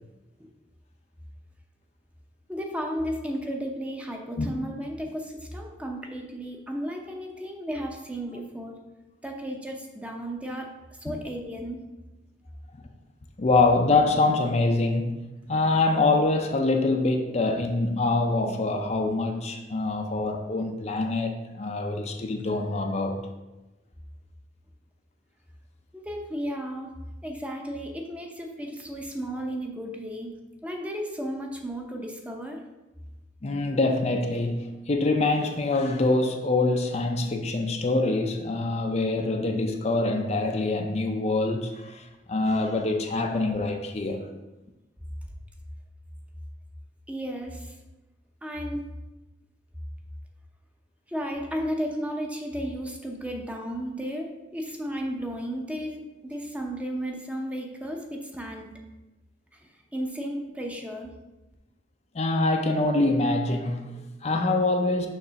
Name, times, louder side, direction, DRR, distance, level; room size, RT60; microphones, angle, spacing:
voice 1, 2.5-8.8 9.2-10.7 11.0-11.8 25.9-26.9 27.2-30.3 30.6-32.6 47.1-47.7 48.4-48.8 51.1-58.7 59.9-61.1, equal, 10° right, 1 dB, 0.7 m, -34 dB
voice 2, 13.4-23.2 33.4-44.2 62.1-65.1, left 2 dB, 40° left, 4 dB, 0.5 m, -25 dB
6.6 x 3.3 x 5.7 m, 1.1 s
head